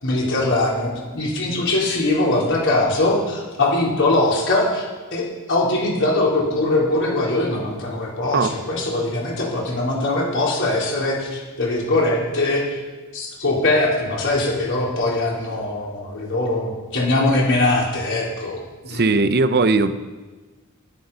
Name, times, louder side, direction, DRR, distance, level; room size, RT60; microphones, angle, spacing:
voice 1, 0.0-12.8 13.1-19.1, left 2 dB, 55° left, -3 dB, 4.0 m, -21 dB
voice 2, 18.9-19.9, right 3 dB, 45° right, 11 dB, 0.7 m, -18 dB
13.0 x 11.5 x 5.6 m, 1.3 s
head